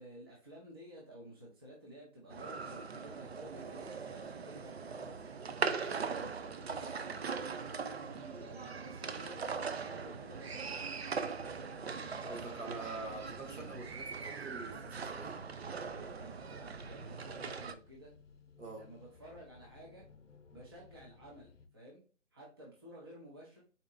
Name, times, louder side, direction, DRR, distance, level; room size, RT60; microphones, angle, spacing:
voice 1, 0.0-7.5 8.0-10.9 12.2-12.9 15.9-18.1 18.7-20.1 20.5-22.0 22.3-23.6, right 1 dB, 20° right, 0.7 m, -53 dB
sound 1, 2.3-17.7, right 5 dB, 55° right, 0.5 m, -40 dB
sound 2, 11.3-21.7, left 4 dB, 65° left, 0.9 m, -59 dB
voice 2, 12.2-15.5 18.6-18.9, right 3 dB, 75° right, 2.2 m, -45 dB
4.2 x 3.8 x 2.3 m
figure-of-eight pair, 155°, 38 cm